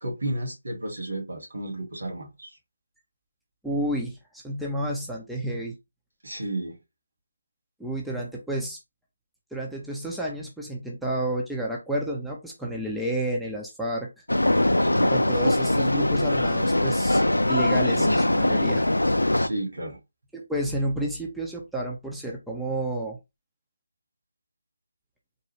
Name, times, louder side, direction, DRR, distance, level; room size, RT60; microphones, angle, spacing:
voice 1, 0.0-2.6 6.2-6.8 14.8-15.2 19.4-20.0, right 1 dB, 65° right, 1.9 m, -32 dB
voice 2, 3.6-5.7 7.8-8.8 9.5-14.1 15.1-18.8 20.3-23.2, right 1 dB, ahead, 0.5 m, -30 dB
sound 1, 14.3-19.5, left 1 dB, 80° left, 0.4 m, -22 dB
3.8 x 2.2 x 3.1 m
figure-of-eight pair, 150°, 0 cm